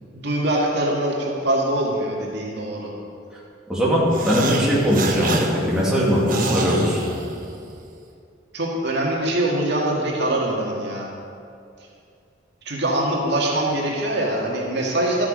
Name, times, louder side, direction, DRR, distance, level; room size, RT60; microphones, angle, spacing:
voice 1, 0.0-2.9 8.5-11.1 12.7-15.3, right 1 dB, 65° right, -3 dB, 2.1 m, -23 dB
voice 2, 3.7-7.0, equal, 5° right, -7 dB, 2.7 m, -20 dB
sound 1, 4.1-7.8, right 2 dB, 50° right, 1.2 m, -28 dB
13.0 x 9.6 x 5.2 m, 2.5 s
head